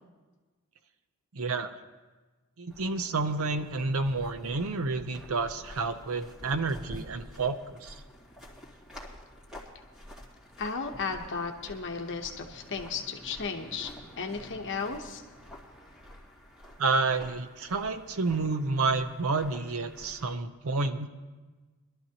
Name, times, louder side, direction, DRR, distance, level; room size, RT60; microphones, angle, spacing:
voice 1, 1.3-1.7 2.6-7.9 16.8-21.1, right 3 dB, 65° right, 10 dB, 0.7 m, -30 dB
sound 1, 2.7-20.3, left 1 dB, 5° right, 2.0 m, -49 dB
voice 2, 10.6-13.9 14.2-15.2, left 5 dB, 55° left, 3 dB, 1.0 m, -34 dB
21.0 x 12.0 x 2.9 m, 1.3 s
head